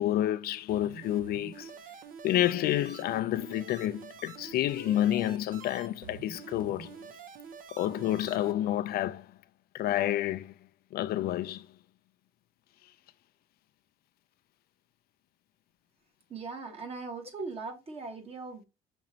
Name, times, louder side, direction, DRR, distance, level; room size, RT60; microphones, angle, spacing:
voice 1, 0.0-1.7 2.2-7.0 7.7-9.3 9.7-10.5 10.9-11.7, left 13 dB, 65° left, 0.4 m, -29 dB
sound 1, 0.7-8.5, right 6 dB, 55° right, 0.7 m, -47 dB
voice 2, 16.3-18.7, right 4 dB, 35° right, 1.4 m, -39 dB
6.1 x 3.0 x 2.7 m
cardioid pair, 110°, 17 cm